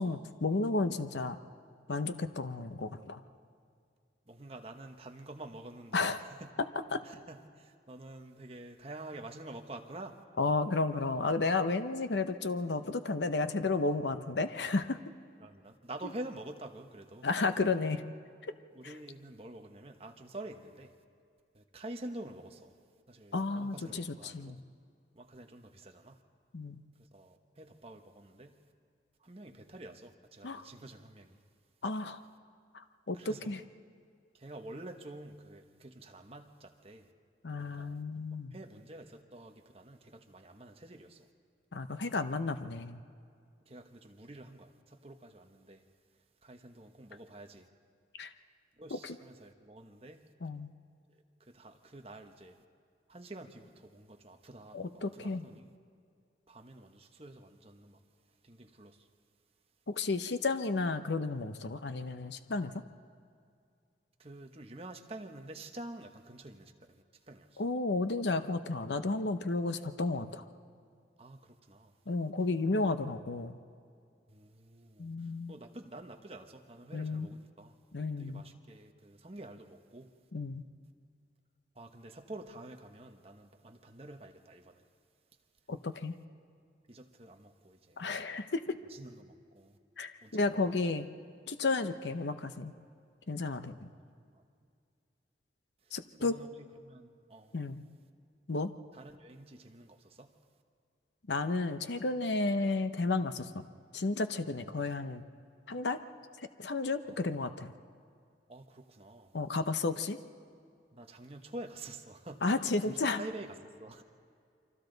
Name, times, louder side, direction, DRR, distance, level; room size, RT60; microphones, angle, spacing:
voice 1, 0.0-1.4 1.9-3.2 5.9-6.2 6.9-7.0 10.4-15.0 17.2-18.0 18.8-18.9 23.3-24.6 26.5-26.8 30.4-30.6 31.8-32.2 32.7-33.6 37.4-38.5 41.7-43.0 48.2-48.3 48.9-49.2 50.4-50.7 54.7-55.5 59.9-62.7 67.6-70.4 72.1-73.6 75.0-75.6 76.9-77.3 77.9-78.4 80.3-80.6 85.7-86.1 88.0-88.8 90.0-91.1 91.5-92.7 93.3-93.9 95.9-96.4 97.5-97.8 98.5-98.7 101.3-103.7 103.9-105.2 105.7-106.0 106.4-107.7 109.3-110.2 112.4-113.2, left 3 dB, 75° left, 0.8 m, -32 dB
voice 2, 4.3-6.1 6.4-6.5 7.0-10.2 15.4-17.3 18.7-20.9 21.5-22.7 23.1-24.6 25.1-26.2 27.0-28.6 29.2-31.4 33.1-33.5 34.3-37.1 37.6-37.9 38.5-41.3 43.7-45.8 46.4-47.7 48.8-50.3 51.1-52.6 53.1-55.7 56.5-58.0 58.4-59.1 64.2-67.6 71.2-71.9 74.3-77.7 78.2-80.1 81.7-84.8 86.9-88.0 88.9-89.8 90.2-90.7 94.2-94.4 95.8-96.5 96.8-97.5 98.9-100.4 107.0-107.2 108.5-109.4 110.9-114.0, right 1 dB, 35° right, 1.2 m, -48 dB
29.0 x 24.5 x 4.0 m
head